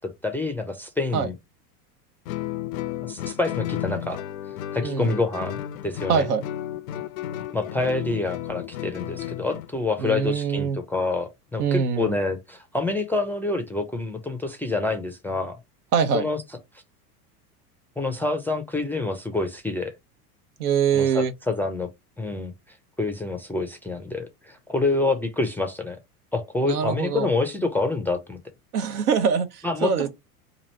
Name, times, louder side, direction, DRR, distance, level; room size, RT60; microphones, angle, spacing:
voice 1, 0.0-1.4 3.0-4.2 4.7-5.6 5.8-6.3 7.5-15.6 16.1-16.4 18.0-19.9 20.9-21.9 22.2-26.0 26.3-28.4 29.6-30.1, left 3 dB, 5° left, 0.4 m, -27 dB
Guitar, 2.3-9.7, left 12 dB, 65° left, 0.5 m, -33 dB
voice 2, 4.8-5.2 6.1-6.4 10.0-10.8 11.6-12.2 15.9-16.3 20.6-21.3 26.6-27.3 28.7-30.1, right 7 dB, 75° right, 0.9 m, -23 dB
3.0 x 2.6 x 4.2 m
hypercardioid pair, 90°, 46 cm